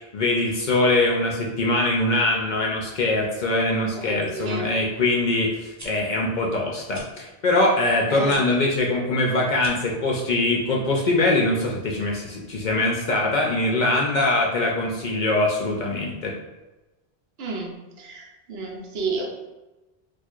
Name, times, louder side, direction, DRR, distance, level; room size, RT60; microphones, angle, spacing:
voice 1, 0.1-16.3, left 2 dB, 55° left, -1 dB, 0.6 m, -22 dB
voice 2, 3.9-4.7 8.1-8.4 17.4-19.4, right 3 dB, 75° right, 1 dB, 0.9 m, -31 dB
sound 1, 5.8-5.9 6.9-7.1 8.2-8.4 9.5-9.9, right 1 dB, 20° right, 0.5 m, -42 dB
4.4 x 2.4 x 2.4 m, 1.1 s
omnidirectional pair, 1.1 m